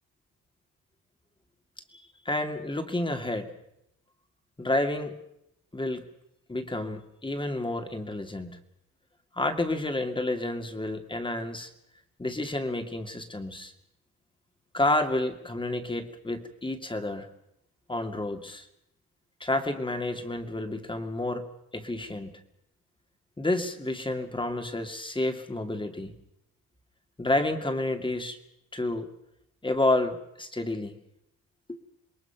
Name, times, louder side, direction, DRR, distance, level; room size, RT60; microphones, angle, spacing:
voice 1, 1.9-3.5 4.6-5.1 5.7-6.0 6.5-8.6 9.4-11.7 12.2-13.7 14.7-17.3 17.9-18.7 19.4-21.5 21.7-22.3 23.4-26.1 27.2-28.4 28.7-29.1 29.6-30.9 31.7-31.8, left 2 dB, 15° left, 7 dB, 2.3 m, -30 dB
27.5 x 21.5 x 5.9 m, 0.80 s
cardioid pair, 125°, 35 cm